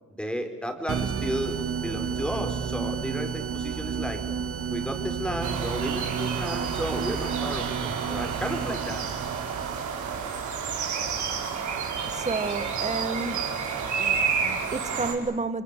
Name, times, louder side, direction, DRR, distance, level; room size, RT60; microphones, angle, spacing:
voice 1, 0.1-1.6 1.8-4.2 4.7-9.0, equal, 5° left, 5 dB, 4.9 m, -33 dB
sound 1, 0.9-10.3, right 7 dB, 50° right, 1.8 m, -32 dB
sound 2, 5.4-15.1, right 6 dB, 70° right, 5.5 m, -30 dB
voice 2, 12.1-13.6 14.0-15.6, right 3 dB, 25° right, 13 dB, 1.8 m, -31 dB
28.5 x 23.5 x 8.4 m, 1.2 s
cardioid pair, 90°, 30 cm